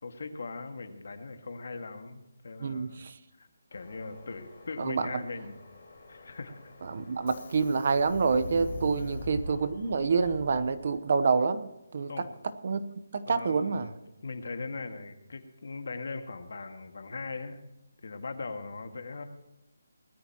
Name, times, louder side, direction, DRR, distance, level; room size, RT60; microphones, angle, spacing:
voice 1, 0.0-3.0 3.4-5.6 6.1-6.7 9.0-9.3 12.0-12.3 13.3-14.0 14.2-17.6 18.0-19.2, left 3 dB, 65° left, 6 dB, 2.0 m, -40 dB
voice 2, 2.6-3.1 4.8-5.1 6.9-12.1 12.6-12.8 13.1-13.9, right 5 dB, 45° right, 12 dB, 0.9 m, -27 dB
Subway metro underground, 3.7-11.1, left 1 dB, 35° left, 4.5 m, -44 dB
20.0 x 13.5 x 3.0 m, 0.93 s
hypercardioid pair, 170°, 0 cm